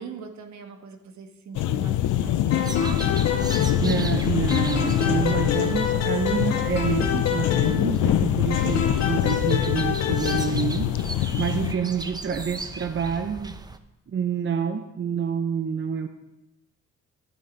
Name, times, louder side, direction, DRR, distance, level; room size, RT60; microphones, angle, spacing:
voice 1, 0.0-3.2 8.9-9.1 11.8-12.1, right 5 dB, 70° right, 6 dB, 1.5 m, -41 dB
sound 1, 1.5-11.7, left 12 dB, 80° left, 0.6 m, -24 dB
sound 2, 2.5-4.2 4.5-8.1 8.5-10.5, left 7 dB, 60° left, 2.0 m, -28 dB
sound 3, 2.6-13.8, right 2 dB, 15° right, 0.8 m, -37 dB
voice 2, 3.7-13.6 14.1-16.1, right 7 dB, 40° right, 7 dB, 0.8 m, -28 dB
12.0 x 8.0 x 5.2 m, 0.93 s
cardioid pair, 90°, 30 cm